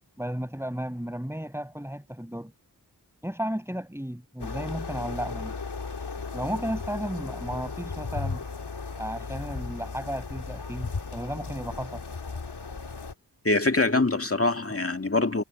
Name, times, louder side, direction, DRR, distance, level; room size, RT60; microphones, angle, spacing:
voice 1, 0.2-2.5 3.2-5.5 6.3-8.5 9.0-12.0, equal, 5° right, 6.3 m, -34 dB
sound 1, 4.4-13.1, left 4 dB, 90° left, 2.5 m, -36 dB
voice 2, 13.4-15.4, left 2 dB, 35° left, 2.1 m, -24 dB
wide cardioid pair, 40°, 39 cm